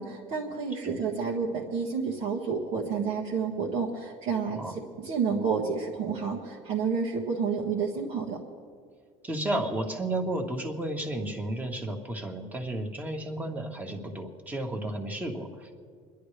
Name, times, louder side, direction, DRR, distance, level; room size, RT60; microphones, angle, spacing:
voice 1, 0.0-8.4, right 5 dB, 65° right, -3 dB, 1.6 m, -30 dB
voice 2, 9.2-15.8, right 1 dB, 10° right, 2 dB, 1.6 m, -33 dB
29.0 x 11.0 x 3.3 m, 2.1 s
cardioid pair, 135°, 14 cm